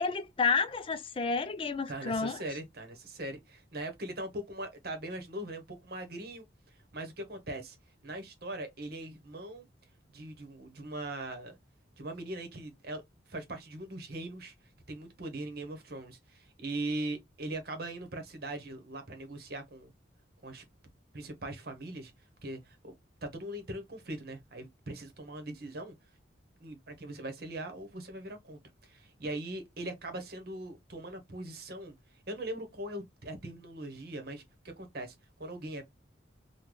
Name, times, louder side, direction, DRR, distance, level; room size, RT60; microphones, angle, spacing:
voice 1, 0.0-2.4, left 5 dB, 30° left, 0.3 m, -30 dB
voice 2, 1.9-7.8 8.0-9.7 10.1-11.6 12.0-14.5 14.9-19.9 20.4-20.6 21.1-22.1 22.4-22.9 23.2-25.9 26.6-34.4 34.8-35.8, right 1 dB, 50° right, 0.9 m, -40 dB
3.8 x 2.2 x 3.1 m
head